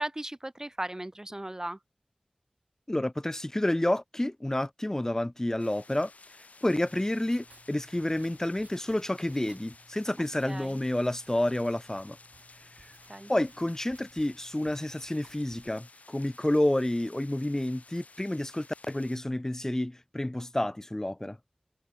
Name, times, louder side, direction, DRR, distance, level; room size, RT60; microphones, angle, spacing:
voice 1, 0.0-1.8 10.5-10.8 13.1-13.3, right 1 dB, 25° right, 1.4 m, -36 dB
voice 2, 2.9-6.1 6.6-12.2 13.3-21.4, left 1 dB, 20° left, 0.6 m, -29 dB
sound 1, 5.6-19.2, left 3 dB, 80° left, 3.9 m, -55 dB
Writing, 6.9-15.8, right 3 dB, 65° right, 4.3 m, -59 dB
wide cardioid pair, 60°, 2 cm